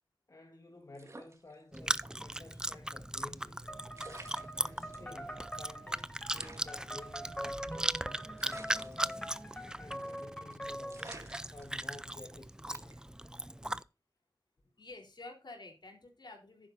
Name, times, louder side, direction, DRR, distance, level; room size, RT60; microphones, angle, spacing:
voice 1, 0.3-3.9 4.6-9.3 9.8-13.0, left 2 dB, 50° left, 1.7 m, -53 dB
sound 1, 0.9-2.1 2.5-2.6 3.6-3.7 3.9-5.1 5.6-5.7 5.9-6.0 6.3-7.9 8.4-9.6 9.9-10.2 10.5-10.6 10.9-12.3 12.7-13.1, right 2 dB, 40° right, 2.2 m, -51 dB
Chewing mastication, 1.7-13.8, right 1 dB, 10° right, 0.4 m, -38 dB
sound 2, 3.7-11.1, equal, 15° left, 4.5 m, -44 dB
voice 2, 14.8-16.7, left 2 dB, 70° left, 3.7 m, -50 dB
11.5 x 9.9 x 2.6 m
wide cardioid pair, 85°, 8 cm